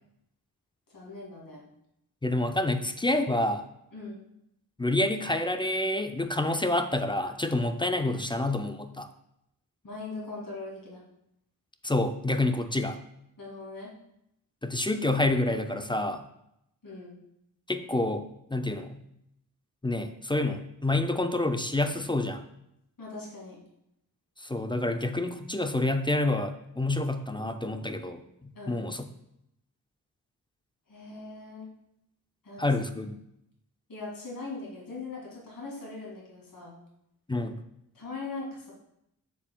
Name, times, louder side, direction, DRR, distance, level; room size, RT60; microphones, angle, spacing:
voice 1, 0.9-1.6 3.9-4.2 9.8-11.0 13.4-13.9 16.8-17.2 23.0-23.6 28.5-28.9 30.9-31.7 32.4-32.7 33.9-36.8 37.9-38.7, left 3 dB, 60° left, -4 dB, 2.3 m, -40 dB
voice 2, 2.2-3.6 4.8-9.1 11.8-13.0 14.6-16.2 17.7-18.3 18.5-19.0 19.8-22.4 24.4-29.1 32.6-33.1 37.3-37.6, left 2 dB, 15° left, 7 dB, 0.4 m, -28 dB
7.1 x 7.1 x 2.2 m, 0.80 s
wide cardioid pair, 90°, 38 cm